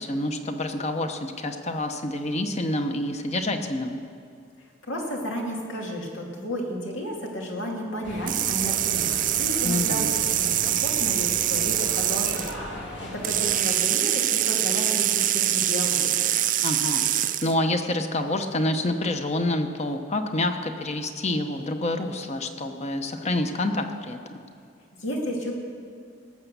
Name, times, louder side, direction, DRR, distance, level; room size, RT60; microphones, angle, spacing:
voice 1, 0.0-4.0 9.6-10.1 16.6-17.0 17.4-24.2, left 1 dB, 35° left, 6 dB, 0.9 m, -27 dB
voice 2, 4.9-16.1 25.0-25.5, equal, 85° left, 0 dB, 2.4 m, -32 dB
sound 1, 8.0-13.6, left 1 dB, 65° left, 2.4 m, -37 dB
sound 2, 8.3-12.5 13.2-17.5, right 12 dB, 45° right, 0.5 m, -24 dB
18.5 x 7.1 x 6.8 m, 2.3 s
head